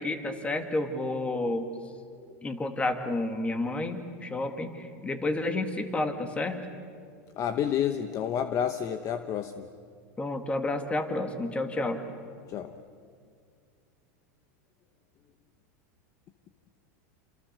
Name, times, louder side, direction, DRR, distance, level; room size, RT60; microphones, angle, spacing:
voice 1, 0.0-1.7 2.4-6.6 10.2-12.0, left 2 dB, 15° left, 7 dB, 2.0 m, -30 dB
voice 2, 7.4-9.7 12.5-12.7, left 9 dB, 35° left, 9 dB, 0.9 m, -29 dB
28.5 x 26.5 x 6.7 m, 2.2 s
supercardioid pair, 140°, 9 cm